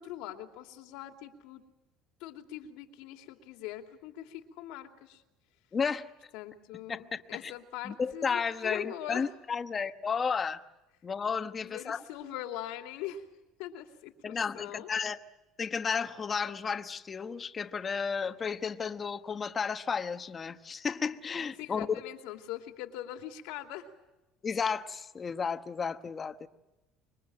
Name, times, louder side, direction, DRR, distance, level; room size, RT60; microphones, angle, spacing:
voice 1, 0.0-1.6 2.2-5.2 6.3-9.3 11.6-13.3 13.6-14.9 21.6-23.9, left 12 dB, 90° left, 2.8 m, -42 dB
voice 2, 5.7-6.1 6.9-7.5 7.8-10.6 11.0-12.0 14.2-15.2 15.6-21.9 24.4-26.5, left 6 dB, 25° left, 1.1 m, -33 dB
26.0 x 23.5 x 7.7 m
cardioid pair, 155°, 0 cm